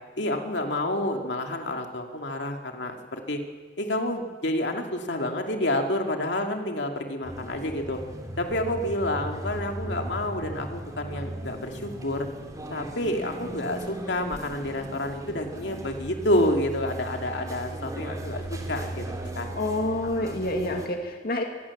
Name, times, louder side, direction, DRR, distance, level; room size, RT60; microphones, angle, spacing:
voice 1, 0.2-3.4 3.8-8.0 8.4-12.3 12.7-19.5 20.1-20.4, left 1 dB, 80° left, 3 dB, 2.4 m, -29 dB
sound 1, 7.2-20.9, right 1 dB, 20° right, 2.9 m, -37 dB
voice 2, 19.6-21.4, left 1 dB, 60° left, 3 dB, 2.3 m, -28 dB
25.0 x 19.5 x 7.3 m, 1.5 s
head